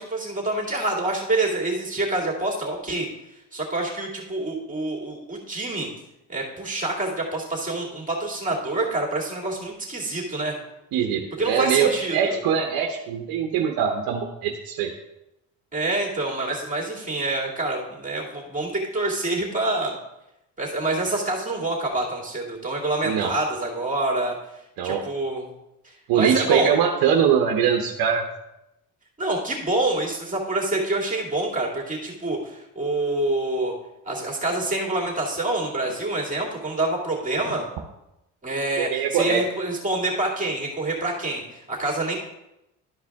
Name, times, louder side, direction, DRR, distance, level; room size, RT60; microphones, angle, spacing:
voice 1, 0.0-3.1 3.5-5.9 6.3-10.5 11.4-12.4 15.7-20.0 20.6-24.3 24.8-25.4 25.8-26.7 29.2-33.7 34.1-37.7 38.4-42.2, right 2 dB, 20° right, -3 dB, 2.5 m, -26 dB
voice 2, 10.9-14.9 23.0-23.3 24.8-25.0 26.1-28.2 38.8-39.4, right 7 dB, 75° right, 2 dB, 1.0 m, -22 dB
12.5 x 4.9 x 3.6 m, 0.89 s
cardioid pair, 100°, 36 cm